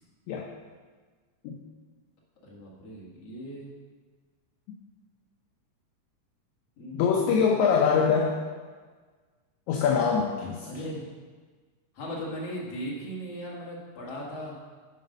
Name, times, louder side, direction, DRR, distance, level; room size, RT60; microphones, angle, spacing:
voice 1, 2.4-3.7 6.8-7.6 10.7-11.0 11.9-14.6, equal, 55° left, -4 dB, 2.7 m, -38 dB
voice 2, 6.9-8.3 9.7-10.7, left 6 dB, 75° left, -1 dB, 2.1 m, -23 dB
9.8 x 5.2 x 5.3 m, 1.4 s
omnidirectional pair, 3.7 m